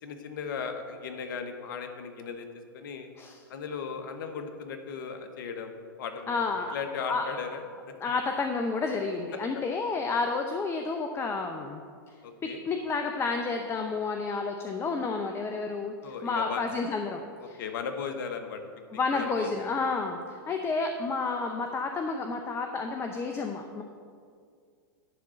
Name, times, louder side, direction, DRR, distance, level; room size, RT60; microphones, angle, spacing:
voice 1, 0.0-2.4 2.7-3.1 3.5-6.4 6.7-7.6 9.3-9.4 12.2-12.6 16.0-16.6 17.6-18.6 19.1-19.7, left 6 dB, 65° left, 7 dB, 1.1 m, -36 dB
voice 2, 6.3-6.7 7.1-7.3 8.0-11.8 12.4-17.6 18.9-23.8, left 4 dB, 20° left, 4 dB, 0.6 m, -30 dB
11.0 x 3.7 x 7.6 m, 2.2 s
hypercardioid pair, 110°, 12 cm